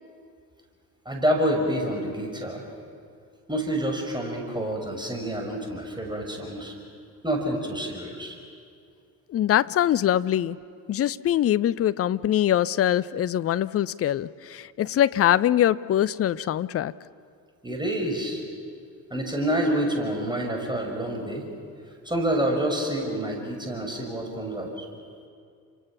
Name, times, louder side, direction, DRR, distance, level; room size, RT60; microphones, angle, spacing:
voice 1, 1.1-2.6 3.5-6.7 7.2-8.4 17.6-18.4 19.1-21.5 22.0-24.9, right 1 dB, 10° right, 1 dB, 5.5 m, -28 dB
voice 2, 9.3-10.6 10.9-16.9, left 11 dB, 30° left, 16 dB, 0.6 m, -23 dB
30.0 x 26.5 x 6.0 m, 2.2 s
figure-of-eight pair, 50°, 48 cm